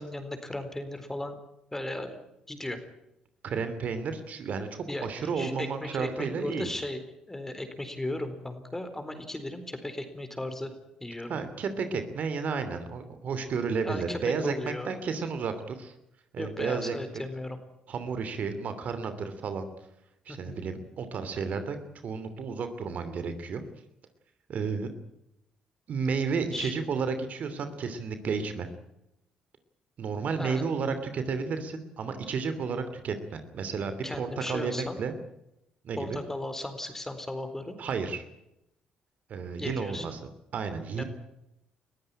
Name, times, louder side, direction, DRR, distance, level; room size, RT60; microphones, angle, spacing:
voice 1, 0.0-1.4 1.7-2.8 4.9-7.0 7.3-10.7 11.0-11.4 13.8-14.9 16.4-17.6 20.3-20.6 26.5-26.7 30.4-30.7 34.0-35.0 36.0-37.8 39.6-40.0 40.9-41.0, left 1 dB, 15° left, 9 dB, 4.1 m, -36 dB
voice 2, 3.4-6.7 11.3-15.9 16.3-17.2 17.9-19.7 20.3-21.8 22.0-23.6 24.5-24.9 25.9-28.7 30.0-35.1 35.8-36.2 37.8-38.2 39.3-40.2 40.5-41.0, right 5 dB, 60° right, 9 dB, 2.9 m, -32 dB
21.5 x 14.5 x 10.0 m, 0.84 s
supercardioid pair, 70°, 3 cm